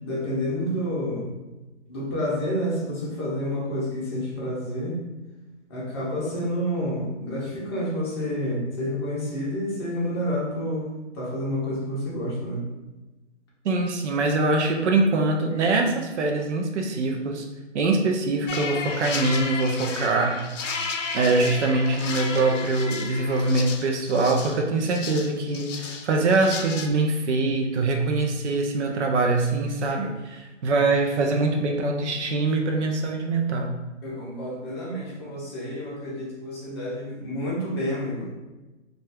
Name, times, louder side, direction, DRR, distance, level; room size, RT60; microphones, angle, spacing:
voice 1, 0.0-1.3 1.9-5.0 5.7-10.9 11.1-12.6 34.0-38.3, equal, 20° left, -5 dB, 0.6 m, -29 dB
voice 2, 13.6-17.5 17.7-20.7 21.1-33.7, right 3 dB, 65° right, 2 dB, 0.6 m, -23 dB
sound 1, 18.5-26.9, left 4 dB, 80° left, 0.6 m, -33 dB
2.5 x 2.4 x 3.3 m, 1.1 s
hypercardioid pair, 150°, 37 cm